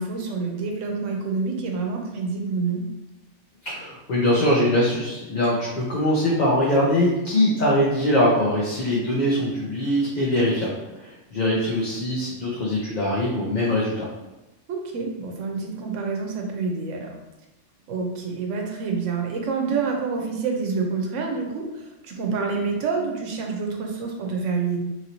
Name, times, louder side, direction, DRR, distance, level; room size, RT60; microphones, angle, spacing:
voice 1, 0.0-2.8 14.7-17.1 17.9-24.8, right 4 dB, 85° right, 2 dB, 0.9 m, -27 dB
voice 2, 3.6-10.7 11.0-14.1, left 1 dB, 50° left, -5 dB, 0.6 m, -22 dB
3.0 x 2.6 x 2.8 m, 0.99 s
omnidirectional pair, 1.2 m